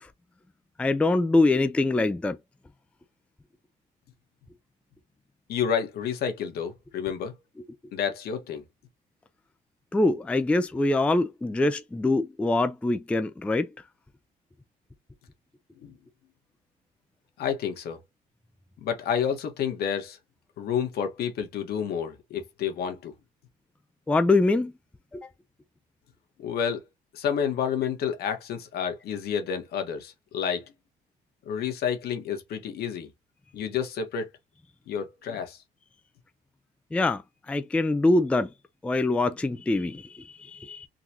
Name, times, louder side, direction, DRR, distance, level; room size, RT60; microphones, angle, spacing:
voice 1, 0.8-2.4 9.9-13.7 24.1-24.7 25.1-25.3 36.9-37.2 37.5-38.5 38.8-40.9, left 2 dB, 5° left, 0.3 m, -24 dB
voice 2, 5.5-7.3 7.9-8.6 15.8-15.9 17.4-18.0 18.8-20.2 20.6-23.1 26.4-26.8 27.1-30.6 31.5-33.1 33.5-34.3 34.9-35.6, left 7 dB, 65° left, 1.3 m, -29 dB
3.9 x 2.4 x 2.8 m
cardioid pair, 110°, 17 cm